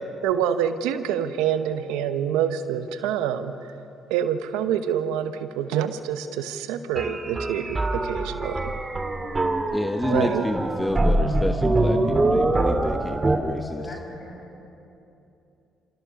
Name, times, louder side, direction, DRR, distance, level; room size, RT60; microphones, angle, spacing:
voice 1, 0.2-3.5 4.1-8.7 10.1-10.4, right 9 dB, 85° right, 10 dB, 1.0 m, -26 dB
sound 1, 7.0-13.4, right 2 dB, 25° right, 2.2 m, -24 dB
voice 2, 9.7-13.9, left 1 dB, 15° left, 5 dB, 1.1 m, -29 dB
voice 3, 13.7-14.6, left 1 dB, 50° left, 1 dB, 6.6 m, -41 dB
27.5 x 16.0 x 7.0 m, 2.8 s
supercardioid pair, 60°, 0 cm